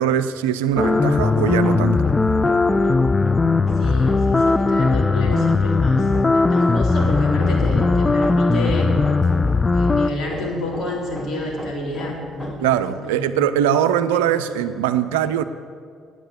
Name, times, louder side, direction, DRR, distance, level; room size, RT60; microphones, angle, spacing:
voice 1, 0.0-2.0 12.6-15.4, right 10 dB, 75° right, 12 dB, 0.4 m, -21 dB
Hammer, 0.7-12.8, equal, 5° left, 1.6 m, -37 dB
sound 1, 0.8-10.1, left 3 dB, 25° left, 0.4 m, -18 dB
voice 2, 3.8-9.0 9.7-12.6 12.9-13.4 14.1-14.7, left 1 dB, 50° left, -1 dB, 3.4 m, -29 dB
10.0 x 9.2 x 8.3 m, 2.1 s
figure-of-eight pair, 50°, 0 cm